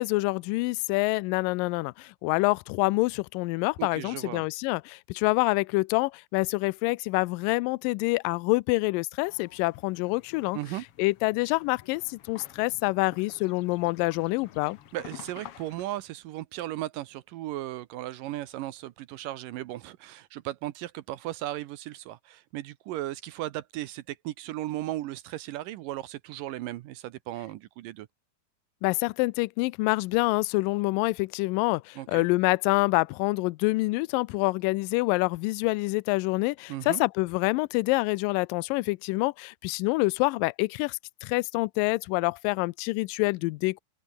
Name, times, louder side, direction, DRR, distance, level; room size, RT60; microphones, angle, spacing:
voice 1, 0.0-10.6 11.0-14.8 28.8-43.8, left 23 dB, 80° left, 2.1 m, -26 dB
voice 2, 3.8-4.4 10.5-10.9 14.9-28.1 32.0-32.3 36.7-37.0, right 15 dB, 75° right, 2.2 m, -36 dB
sound 1, 9.2-15.9, left 10 dB, 65° left, 1.4 m, -50 dB
open air
omnidirectional pair, 4.4 m